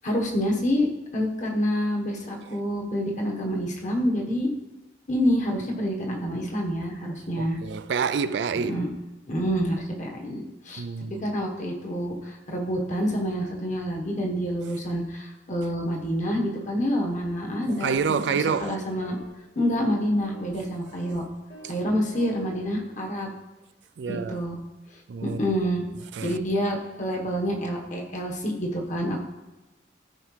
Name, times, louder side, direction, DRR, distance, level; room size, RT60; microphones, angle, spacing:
voice 1, 0.0-0.9 1.1-4.5 5.1-7.6 8.6-8.9 9.3-10.8 11.2-19.2 19.5-21.2 21.7-23.3 24.1-24.6 25.2-25.8 26.2-29.2, equal, 45° left, 1.4 m, -27 dB
voice 2, 7.4-8.8 10.8-11.3 17.8-18.8 24.0-24.4 25.1-25.5 26.1-26.4, right 6 dB, 65° right, 0.3 m, -28 dB
sound 1, 17.7-18.0 18.3-18.6 19.0-19.3 19.6-20.5 20.9-21.2 21.5-21.8 22.1-22.8, left 1 dB, 60° left, 2.7 m, -45 dB
13.5 x 4.9 x 3.3 m
head